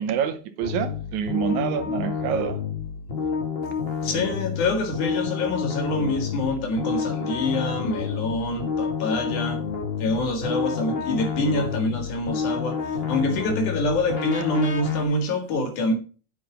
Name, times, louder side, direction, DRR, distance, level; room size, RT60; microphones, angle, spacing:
voice 1, 0.0-2.6, right 8 dB, 80° right, 2.4 m, -27 dB
sound 1, 0.6-15.0, left 6 dB, 55° left, 0.6 m, -29 dB
voice 2, 4.0-9.6 10.0-15.9, left 2 dB, 85° left, 3.5 m, -26 dB
9.3 x 7.1 x 5.0 m
omnidirectional pair, 3.4 m